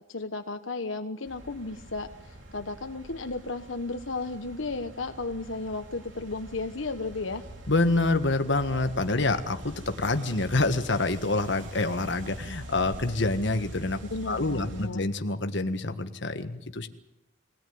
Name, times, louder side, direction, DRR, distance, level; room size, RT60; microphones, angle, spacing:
voice 1, 0.1-7.4 14.0-15.1, left 3 dB, 80° left, 7 dB, 1.3 m, -34 dB
sound 1, 1.2-14.9, right 1 dB, 65° right, 4.0 m, -44 dB
voice 2, 7.7-14.0 14.2-16.9, left 2 dB, 60° left, 8 dB, 1.6 m, -27 dB
23.5 x 17.5 x 9.5 m, 0.92 s
head